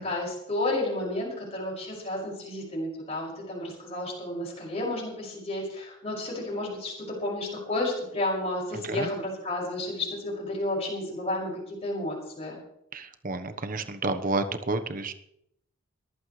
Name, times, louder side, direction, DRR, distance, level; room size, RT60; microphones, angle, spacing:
voice 1, 0.0-12.6, left 1 dB, 30° left, -4 dB, 6.1 m, -32 dB
voice 2, 12.9-15.1, right 2 dB, 40° right, 9 dB, 1.1 m, -30 dB
21.0 x 14.5 x 3.3 m, 0.74 s
head